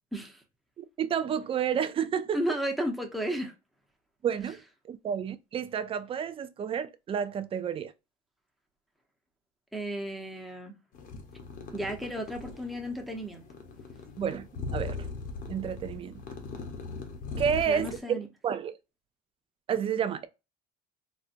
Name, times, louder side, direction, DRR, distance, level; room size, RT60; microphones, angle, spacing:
voice 1, 0.1-0.4 2.3-3.5 9.7-10.8 11.7-13.4 17.7-18.3, right 1 dB, ahead, 0.8 m, -33 dB
voice 2, 1.0-2.4 4.2-4.6 4.9-7.9 14.2-15.1 15.5-16.2 17.4-18.8 19.7-20.3, right 8 dB, 30° right, 0.4 m, -30 dB
sound 1, 10.9-18.0, left 3 dB, 45° left, 0.8 m, -40 dB
4.2 x 2.2 x 2.5 m
cardioid pair, 130°, 19 cm